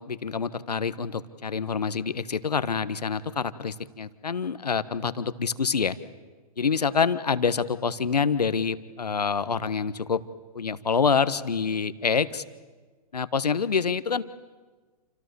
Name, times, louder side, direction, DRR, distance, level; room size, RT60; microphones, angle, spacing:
voice 1, 0.0-6.0 6.6-10.2 10.5-12.4 13.1-14.2, left 5 dB, 85° left, 13 dB, 1.4 m, -26 dB
29.0 x 26.5 x 7.0 m, 1.4 s
figure-of-eight pair, 120°, 20 cm